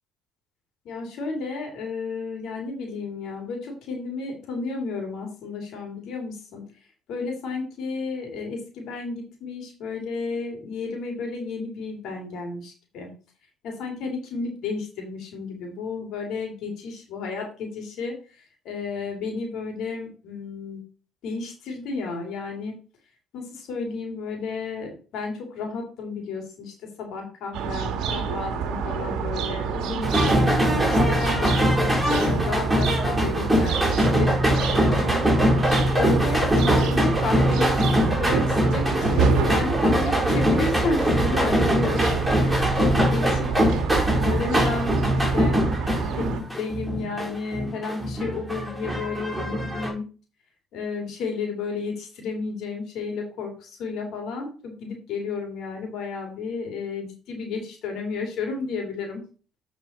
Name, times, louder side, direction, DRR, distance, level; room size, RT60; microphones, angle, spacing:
voice 1, 0.8-6.6 7.1-13.1 13.6-20.8 21.2-22.8 23.3-30.4 30.8-35.3 36.0-37.8 38.2-38.8 39.1-43.7 44.0-45.6 46.2-50.1 50.7-59.2, left 4 dB, 70° left, 2 dB, 2.6 m, -32 dB
sound 1, 27.5-46.4, right 7 dB, 70° right, 1.2 m, -28 dB
sound 2, 30.0-49.9, equal, 5° right, 3.9 m, -22 dB
9.3 x 4.4 x 4.2 m, 0.37 s
supercardioid pair, 85°, 0 cm